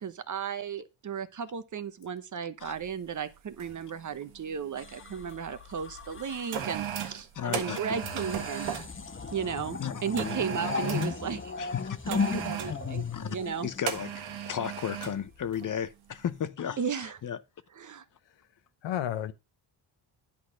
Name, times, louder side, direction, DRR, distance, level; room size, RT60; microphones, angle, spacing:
voice 1, 0.0-8.7 9.3-11.5 12.1-13.7 16.8-17.2 17.8-18.0, right 7 dB, 40° right, 0.9 m, -35 dB
sound 1, 2.8-2.9 3.6-3.9 4.1-5.3 6.0-8.9 10.2-11.2 12.1-12.8 13.9-15.2 15.5-15.7, right 9 dB, 85° right, 1.6 m, -36 dB
sound 2, 4.8-6.9 7.9-14.4 15.3-15.6, left 5 dB, 25° left, 1.1 m, -36 dB
voice 2, 7.3-7.8 9.8-10.0 10.6-10.7 11.6-12.2 12.6-12.7 13.1-13.3 13.6-17.4, left 8 dB, 45° left, 0.7 m, -34 dB
voice 3, 8.0-8.4 18.3-18.4 18.8-19.3, left 11 dB, 70° left, 0.9 m, -34 dB
10.5 x 4.2 x 6.3 m
cardioid pair, 90°, 46 cm